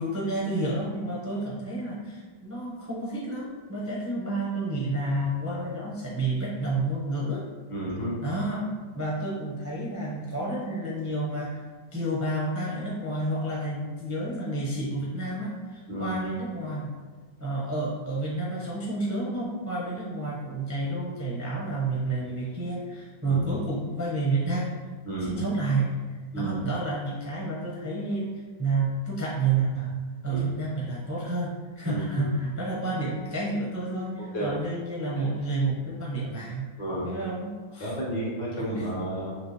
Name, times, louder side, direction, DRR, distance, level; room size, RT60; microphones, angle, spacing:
voice 1, 0.0-7.4 8.2-8.7 8.9-11.6 11.9-16.9 17.4-24.7 25.2-26.0 26.3-28.3 28.6-29.9 30.2-36.7 37.0-37.9 38.6-38.9, right 2 dB, 20° right, -6 dB, 0.4 m, -30 dB
voice 2, 7.7-8.2 15.9-16.1 23.2-23.6 25.1-25.3 26.3-26.6 30.3-30.4 31.8-32.3 34.3-34.5 36.8-37.1 37.8-39.4, right 1 dB, 85° left, -5 dB, 2.1 m, -32 dB
6.2 x 2.9 x 3.0 m, 1.4 s
omnidirectional pair, 1.9 m